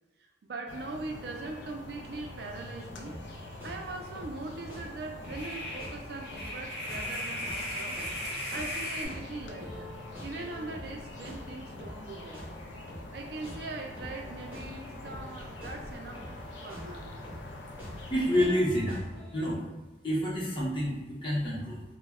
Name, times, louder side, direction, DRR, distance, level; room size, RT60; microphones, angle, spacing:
voice 1, 0.2-8.0 8.5-9.9 10.2-12.5 13.1-17.1, right 3 dB, 60° right, 3 dB, 0.3 m, -41 dB
sound 1, 0.7-18.5, left 2 dB, 85° left, 0.4 m, -45 dB
sound 2, 2.8-19.5, equal, 10° right, 0.6 m, -47 dB
sound 3, 3.2-3.3 3.7-3.8 5.2-9.1, equal, 65° left, 0.8 m, -37 dB
voice 2, 18.1-19.0 19.3-19.6 20.0-21.8, equal, 25° left, -6 dB, 0.7 m, -28 dB
2.1 x 2.0 x 3.4 m, 1.1 s
head